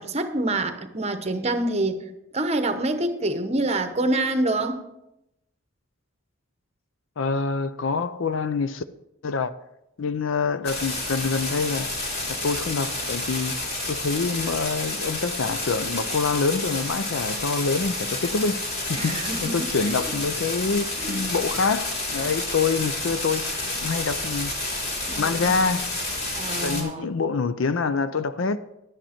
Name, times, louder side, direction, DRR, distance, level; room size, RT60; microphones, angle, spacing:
voice 1, 0.0-2.0 2.3-4.9 18.9-19.9 21.0-21.2 25.1-25.6 26.3-27.1, right 2 dB, 30° right, 0.9 m, -26 dB
voice 2, 7.2-8.8 9.2-9.5 10.0-11.9 12.3-13.6 13.9-18.6 18.9-24.5 25.2-25.9 26.6-28.6, left 4 dB, 70° left, 0.5 m, -26 dB
sound 1, 10.6-26.8, left 2 dB, 55° left, 3.5 m, -30 dB
11.5 x 9.1 x 4.3 m
head